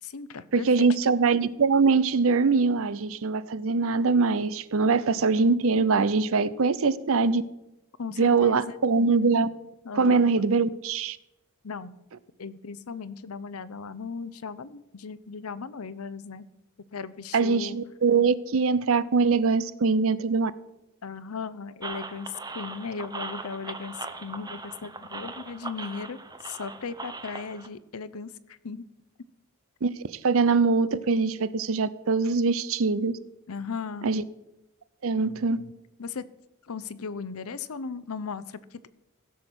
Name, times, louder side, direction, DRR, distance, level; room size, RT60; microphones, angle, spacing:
voice 1, 0.0-1.0 8.0-8.7 9.8-10.3 11.6-11.9 12.4-16.4 16.9-17.8 21.0-28.8 33.5-34.1 36.0-36.2 36.7-38.9, left 5 dB, 80° left, 16 dB, 0.7 m, -37 dB
voice 2, 0.5-7.4 8.2-9.5 9.9-11.2 17.3-20.5 29.8-33.2 34.0-34.2 35.0-35.6, right 4 dB, 70° right, 17 dB, 0.6 m, -23 dB
sound 1, 21.8-27.7, right 3 dB, 20° right, 0.8 m, -39 dB
16.0 x 7.1 x 6.2 m, 0.91 s
head